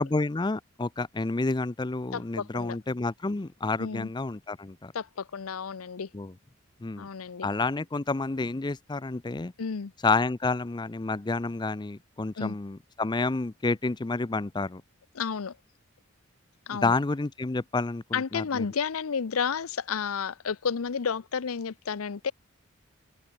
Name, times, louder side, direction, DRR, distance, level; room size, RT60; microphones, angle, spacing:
voice 1, 0.0-4.9 6.1-6.3 6.8-7.1 7.4-9.5 10.0-14.8 16.7-18.7, left 3 dB, 20° left, 0.5 m, -29 dB
voice 2, 2.1-2.8 3.8-4.1 4.9-6.1 7.0-7.5 9.6-9.9 12.4-12.6 15.1-15.5 16.7-17.0 18.1-22.3, left 6 dB, 80° left, 0.6 m, -31 dB
open air
head